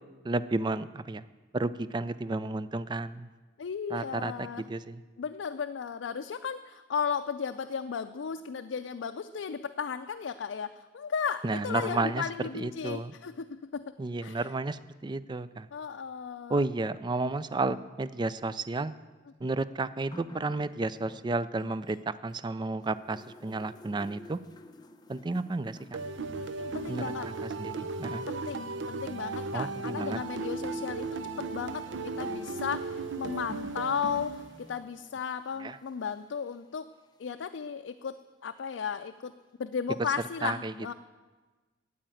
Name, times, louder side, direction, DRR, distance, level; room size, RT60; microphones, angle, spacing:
voice 1, 0.2-1.2 1.5-3.3 3.9-5.0 11.4-12.2 12.5-13.1 14.0-15.7 16.5-18.9 19.4-24.4 25.1-26.0 26.9-27.0 27.4-28.3 29.5-30.2 35.6-35.8 40.4-40.9, right 3 dB, 25° right, 15 dB, 0.4 m, -32 dB
voice 2, 3.6-4.6 5.2-13.9 14.2-14.5 15.7-16.6 17.2-17.3 26.6-27.3 28.3-36.9 37.2-38.1 38.4-39.3 39.6-40.9, left 6 dB, 90° left, 7 dB, 0.4 m, -35 dB
sound 1, 20.1-22.5 22.8-37.5 38.4-38.5, left 1 dB, 25° left, 0.7 m, -54 dB
sound 2, 25.9-34.9, right 3 dB, 85° right, 0.6 m, -36 dB
8.9 x 8.6 x 9.0 m, 1.3 s
head